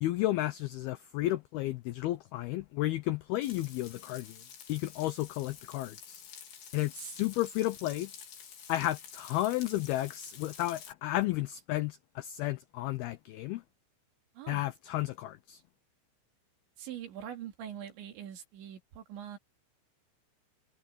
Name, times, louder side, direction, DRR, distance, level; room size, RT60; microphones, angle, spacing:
voice 1, 0.0-4.4 4.7-6.2 6.7-8.1 8.7-13.6 14.5-15.6, left 16 dB, 90° left, 2.2 m, -32 dB
Frying (food), 3.4-10.9, left 8 dB, 65° left, 5.5 m, -50 dB
voice 2, 14.3-14.7 16.8-19.4, right 9 dB, 75° right, 5.1 m, -43 dB
omnidirectional pair, 5.3 m